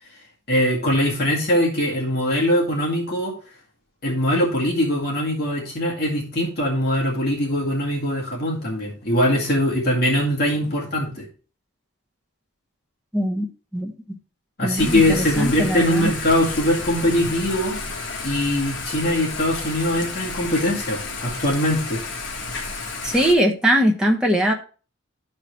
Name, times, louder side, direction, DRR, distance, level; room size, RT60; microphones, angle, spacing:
voice 1, 0.5-3.3 4.0-11.2 14.6-17.8 18.2-22.0, left 1 dB, 50° left, -3 dB, 2.1 m, -22 dB
voice 2, 13.1-13.5 13.7-14.2 14.6-16.1 23.0-24.5, equal, 5° right, 0 dB, 1.0 m, -21 dB
Thunder / Rain, 14.8-23.3, left 3 dB, 65° left, 1.5 m, -31 dB
13.0 x 4.3 x 3.1 m, 0.37 s
head